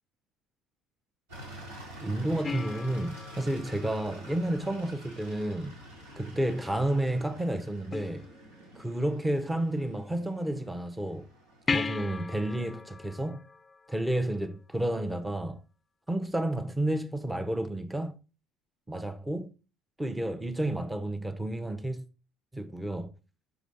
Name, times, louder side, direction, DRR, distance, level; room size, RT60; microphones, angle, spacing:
sound 1, 1.3-13.0, equal, 75° right, 2.7 m, -48 dB
voice 1, 2.0-5.7 6.2-8.3 8.7-11.2 11.7-13.4 13.9-15.6 16.1-18.2 18.9-19.5 20.0-22.0 22.5-23.1, right 1 dB, 10° right, 1.0 m, -31 dB
sound 2, 2.4-5.1 7.9-8.9 11.7-14.6 17.6-17.7, left 4 dB, 25° left, 0.4 m, -37 dB
5.8 x 4.9 x 5.3 m
figure-of-eight pair, 55°, 0 cm